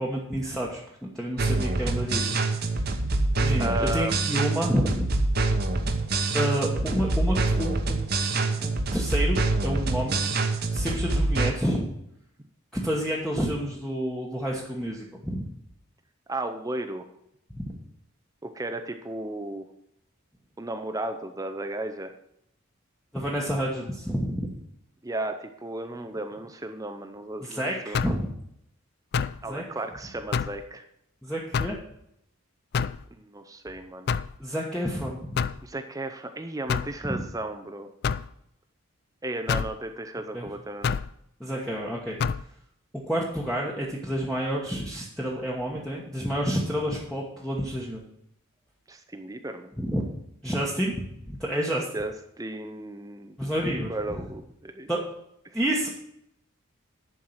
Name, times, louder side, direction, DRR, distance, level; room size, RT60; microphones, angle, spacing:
voice 1, 0.0-2.8 3.4-5.1 6.3-8.0 8.5-10.2 10.7-11.9 12.7-15.4 17.5-17.8 23.1-24.5 27.4-28.3 29.5-29.6 31.2-31.8 34.4-35.3 40.3-40.5 41.4-42.2 43.1-48.0 49.8-50.0 50.4-51.9 53.4-53.9 54.9-55.0 55.5-55.9, equal, 5° left, -4 dB, 1.2 m, -29 dB
sound 1, 1.4-11.5, right 2 dB, 50° right, 1.0 m, -26 dB
voice 2, 3.6-4.2 10.9-11.2 16.3-17.1 18.4-19.7 20.6-22.1 25.0-28.1 29.4-30.9 33.1-34.1 35.6-37.9 39.2-40.9 48.9-49.7 51.9-53.4 53.6-54.9 55.5-55.6, right 2 dB, 15° right, 6 dB, 0.6 m, -34 dB
sound 2, 27.9-28.3 29.1-29.4 30.3-30.6 31.5-31.8 32.7-33.0 34.1-34.4 35.4-35.6 36.7-36.9 38.0-38.3 39.5-39.7 40.8-41.1 42.2-42.4, left 6 dB, 50° left, 0.3 m, -27 dB
11.0 x 4.7 x 7.9 m, 0.76 s
head